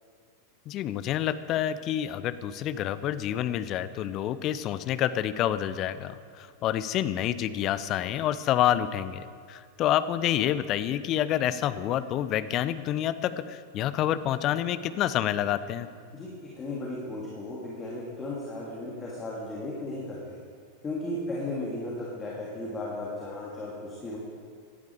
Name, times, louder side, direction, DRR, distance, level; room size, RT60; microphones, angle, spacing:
voice 1, 0.7-15.9, left 11 dB, 35° left, 14 dB, 0.6 m, -28 dB
voice 2, 16.1-20.4 20.8-24.2, left 2 dB, 15° left, -5 dB, 3.0 m, -35 dB
18.0 x 12.0 x 4.9 m, 2.1 s
figure-of-eight pair, 90°, 0 cm